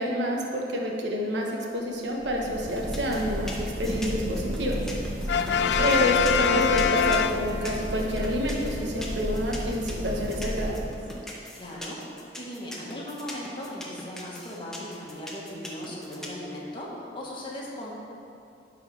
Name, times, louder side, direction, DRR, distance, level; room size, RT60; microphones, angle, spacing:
voice 1, 0.0-4.8 5.8-10.8, equal, 90° right, -1 dB, 1.2 m, -28 dB
sound 1, 2.1-11.3, equal, 50° right, 0.9 m, -33 dB
sound 2, 2.8-16.4, left 1 dB, 5° left, 0.9 m, -40 dB
Brass instrument, 5.3-7.9, left 7 dB, 75° left, 0.3 m, -24 dB
voice 2, 5.4-6.2 11.5-12.0 12.3-17.9, left 1 dB, 30° left, -5 dB, 1.5 m, -38 dB
11.0 x 4.2 x 4.9 m, 2.6 s
head